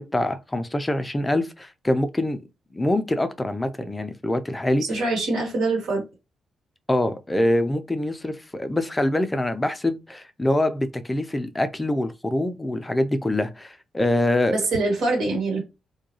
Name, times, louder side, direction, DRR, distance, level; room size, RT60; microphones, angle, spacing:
voice 1, 0.0-2.4 2.7-4.8 6.9-14.6, left 1 dB, 20° left, 0.4 m, -24 dB
voice 2, 4.9-6.0 14.5-15.6, right 2 dB, 80° right, 1.3 m, -24 dB
2.3 x 2.2 x 2.8 m
hypercardioid pair, 45°, 0 cm